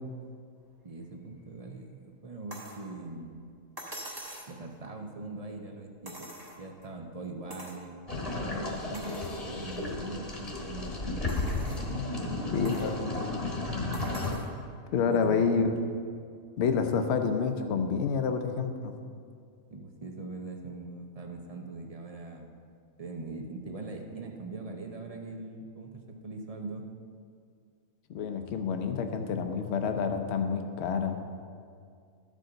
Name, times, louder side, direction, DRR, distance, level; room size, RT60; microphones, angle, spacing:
voice 1, 0.8-3.4 4.5-8.0 8.3-11.3 12.1-12.6 15.1-15.7 19.7-22.5 23.0-26.8, right 3 dB, 45° right, 2 dB, 0.5 m, -41 dB
sound 1, 2.5-2.8 3.8-4.6 6.0-6.8 7.5-7.8 8.3-8.4 8.9-9.4 10.0-10.1 11.3-11.9 12.6-12.9 13.9-14.5 15.8-15.9, right 1 dB, 20° right, 0.9 m, -44 dB
sound 2, 8.1-14.3, left 2 dB, 30° left, 1.1 m, -33 dB
voice 2, 12.5-12.9 14.9-15.7 16.6-19.0 28.1-31.2, left 5 dB, 60° left, 7 dB, 0.8 m, -28 dB
12.5 x 5.0 x 3.8 m, 2.2 s
omnidirectional pair, 1.4 m